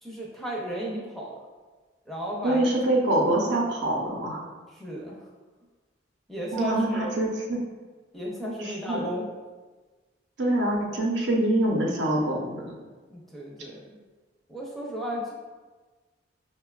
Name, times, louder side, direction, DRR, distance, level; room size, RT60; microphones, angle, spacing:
voice 1, 0.0-1.4 2.1-2.7 4.7-5.3 6.3-7.2 8.1-9.3 13.1-13.8 14.5-15.3, equal, ahead, -4 dB, 0.4 m, -34 dB
voice 2, 2.4-4.5 6.5-7.6 8.6-9.1 10.4-12.8, right 1 dB, 70° right, -2 dB, 0.6 m, -25 dB
5.1 x 2.2 x 2.3 m, 1.3 s
head